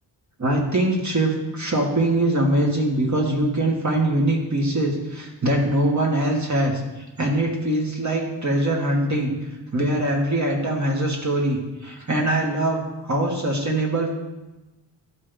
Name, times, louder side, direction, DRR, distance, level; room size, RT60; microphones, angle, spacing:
voice 1, 0.4-6.8 7.2-9.3 9.7-14.1, right 1 dB, 40° right, -1 dB, 1.7 m, -22 dB
11.5 x 3.9 x 3.4 m, 1.1 s
cardioid pair, 65°, 43 cm